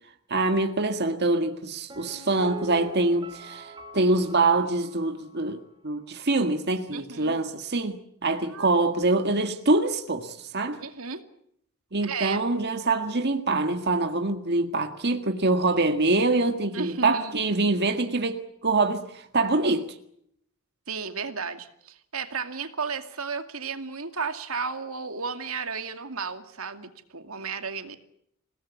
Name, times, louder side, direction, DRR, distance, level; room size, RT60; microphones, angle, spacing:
voice 1, 0.3-10.8 11.9-19.9, right 2 dB, 50° right, 1.8 m, -25 dB
Piano, 1.9-5.7 5.9-6.0, right 1 dB, 20° right, 3.0 m, -44 dB
voice 2, 6.9-7.3 8.5-8.8 10.8-11.2 12.0-12.4 16.7-17.5 20.9-28.0, right 5 dB, 75° right, 2.4 m, -33 dB
28.5 x 18.0 x 8.3 m
head